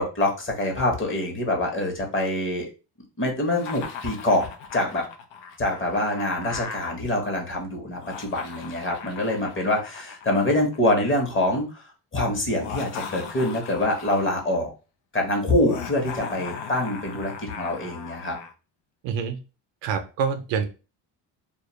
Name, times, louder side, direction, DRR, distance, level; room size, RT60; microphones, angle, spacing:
voice 1, 0.0-2.7 3.2-4.5 4.7-5.0 5.6-11.9 12.1-14.7 15.1-18.4, left 1 dB, 30° left, 1 dB, 0.9 m, -25 dB
Laughter, 3.5-6.9 7.9-11.2 12.5-14.5 15.6-18.5, left 6 dB, 75° left, 0.6 m, -38 dB
voice 2, 19.0-19.4 19.8-20.7, right 6 dB, 80° right, 8 dB, 0.6 m, -26 dB
2.3 x 2.0 x 3.0 m, 0.32 s
cardioid pair, 100°, 43 cm